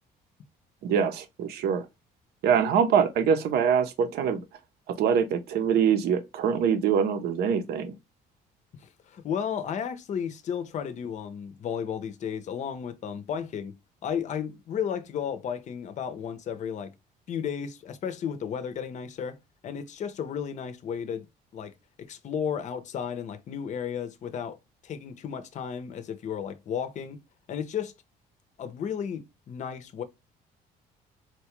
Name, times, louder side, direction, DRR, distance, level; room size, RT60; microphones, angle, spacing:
voice 1, 0.8-1.9 2.4-4.4 5.0-7.9, right 7 dB, 70° right, 0.7 m, -24 dB
voice 2, 8.7-13.8 14.0-16.9 17.3-19.4 19.6-21.3 21.5-21.7 22.0-24.6 24.8-27.2 27.5-27.9 28.6-30.0, left 8 dB, 45° left, 0.6 m, -33 dB
4.1 x 2.2 x 2.9 m
cardioid pair, 110°, 17 cm